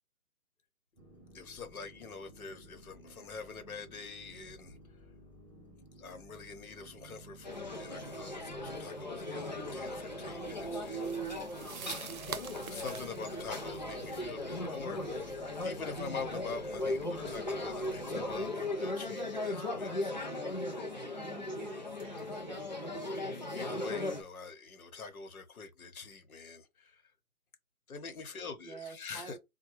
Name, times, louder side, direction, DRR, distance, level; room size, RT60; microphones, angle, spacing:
sound 1, 1.0-18.5, equal, ahead, 0.9 m, -56 dB
voice 1, 1.3-5.1 6.0-11.4 12.7-20.8 23.5-27.1 27.9-29.4, left 4 dB, 65° left, 1.0 m, -45 dB
sound 2, 7.4-24.2, left 1 dB, 30° left, 0.4 m, -38 dB
sound 3, 10.4-15.3, right 7 dB, 65° right, 0.7 m, -47 dB
voice 2, 21.2-23.0 28.6-29.4, right 2 dB, 30° right, 1.1 m, -48 dB
3.7 x 2.2 x 3.0 m
figure-of-eight pair, 145°, 45 cm